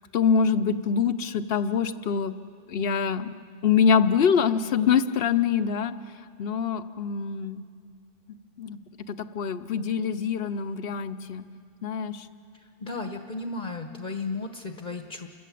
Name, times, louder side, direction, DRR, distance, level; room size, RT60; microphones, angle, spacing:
voice 1, 0.1-2.3 2.7-3.3 3.6-5.9 6.4-7.6 8.3-8.8 9.1-11.5 11.8-12.3, left 6 dB, 70° left, 12 dB, 1.0 m, -24 dB
voice 2, 12.5-15.3, left 3 dB, 50° left, 5 dB, 1.1 m, -34 dB
29.5 x 14.0 x 8.4 m, 2.3 s
omnidirectional pair, 1.0 m